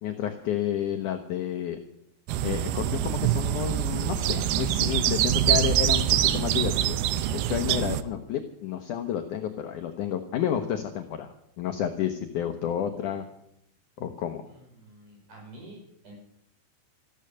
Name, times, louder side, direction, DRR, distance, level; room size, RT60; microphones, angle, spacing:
voice 1, 0.0-1.8 2.4-6.1 6.3-7.0 7.3-11.3 11.6-13.3 14.0-14.4, left 10 dB, 75° left, 6 dB, 1.9 m, -30 dB
sound 1, 2.3-8.0, right 11 dB, 80° right, 2.7 m, -25 dB
voice 2, 14.5-16.2, right 1 dB, 50° right, 0 dB, 6.5 m, -48 dB
14.5 x 13.5 x 6.5 m, 0.76 s
omnidirectional pair, 4.7 m